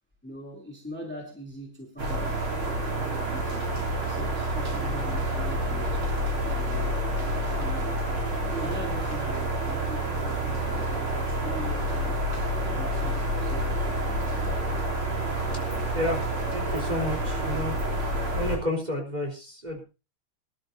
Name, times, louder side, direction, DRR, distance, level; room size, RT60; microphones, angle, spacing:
voice 1, 0.2-2.5 2.8-3.7 4.0-6.0 6.5-8.0 8.5-12.3 12.6-14.3, equal, 5° left, 1 dB, 2.7 m, -41 dB
sound 1, 2.0-18.6, right 1 dB, 80° right, 4.1 m, -28 dB
voice 2, 16.5-17.8 18.3-19.8, left 1 dB, 20° right, 0 dB, 3.9 m, -30 dB
24.0 x 12.0 x 2.7 m, 0.30 s
omnidirectional pair, 2.3 m